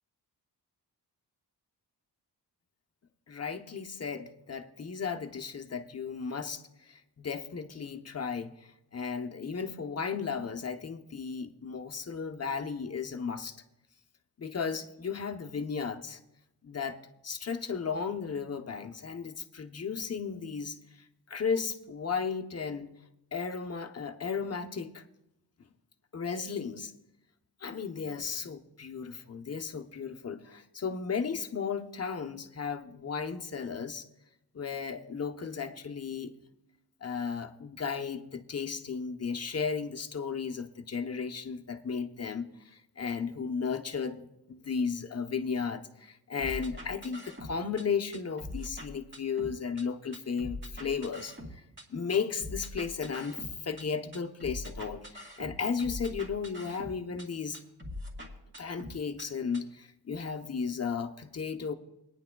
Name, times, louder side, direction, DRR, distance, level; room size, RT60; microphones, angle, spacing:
voice 1, 3.3-13.6 14.4-16.2 16.6-20.8 21.3-22.9 23.3-25.0 26.1-26.9 27.6-34.1 34.5-36.3 37.0-51.6 51.9-57.6 58.6-61.7, left 6 dB, 35° left, 5 dB, 0.8 m, -35 dB
sound 1, 46.4-47.8 48.1-49.8 50.1-51.8 52.1-53.8 54.1-57.3 57.5-59.3 59.5-59.6, left 1 dB, 30° right, 2.5 m, -42 dB
22.0 x 9.9 x 2.3 m, 0.86 s
cardioid pair, 90°, 41 cm